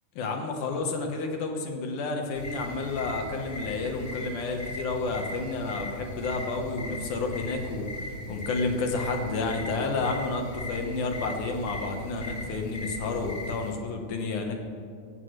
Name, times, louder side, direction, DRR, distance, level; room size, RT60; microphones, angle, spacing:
voice 1, 0.2-14.6, left 3 dB, 75° left, 3 dB, 2.7 m, -30 dB
sound 1, 2.3-13.8, left 1 dB, 50° left, 0.8 m, -39 dB
16.0 x 8.2 x 6.5 m, 2.2 s
omnidirectional pair, 3.6 m